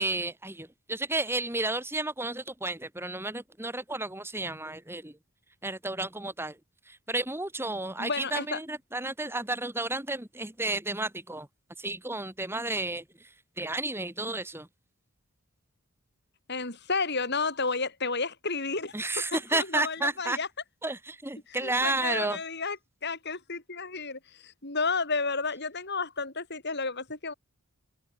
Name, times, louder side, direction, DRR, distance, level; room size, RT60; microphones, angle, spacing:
voice 1, 0.0-5.1 5.6-6.6 6.9-11.5 11.8-13.3 13.6-14.7 18.9-20.4 20.8-22.4, right 2 dB, 10° right, 3.1 m, -32 dB
voice 2, 8.0-8.6 16.5-20.5 21.5-22.8 23.0-27.3, left 4 dB, 50° left, 6.9 m, -32 dB
head